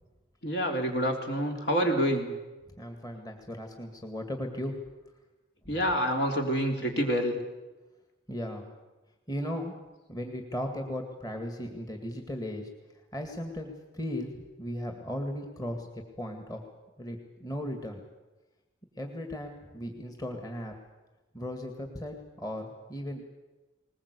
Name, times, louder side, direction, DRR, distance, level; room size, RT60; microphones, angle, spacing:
voice 1, 0.4-2.3 5.7-7.3, equal, 60° left, 2 dB, 3.5 m, -27 dB
voice 2, 2.8-4.8 5.7-5.8 8.3-8.7 9.3-9.7 10.1-12.7 13.1-16.6 17.0-18.0 19.0-20.7 21.3-23.2, equal, 20° left, 4 dB, 2.0 m, -37 dB
20.5 x 20.0 x 8.3 m, 1.1 s
head